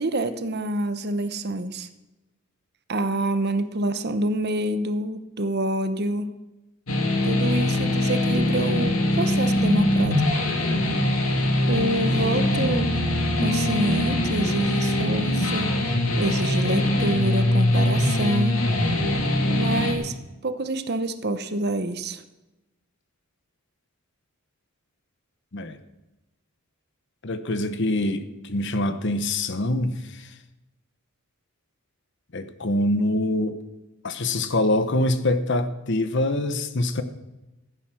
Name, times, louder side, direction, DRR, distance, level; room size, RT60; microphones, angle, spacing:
voice 1, 0.0-1.9 2.9-6.3 7.2-10.2 11.7-12.9 13.4-18.6 19.5-20.1 20.4-22.2, right 1 dB, 50° right, 11 dB, 0.9 m, -27 dB
sound 1, 6.9-19.9, left 1 dB, 75° left, 2.5 m, -22 dB
voice 2, 27.2-30.3 32.3-33.6 34.0-37.0, left 1 dB, 55° left, 11 dB, 1.0 m, -25 dB
15.5 x 9.5 x 6.2 m, 1.0 s
head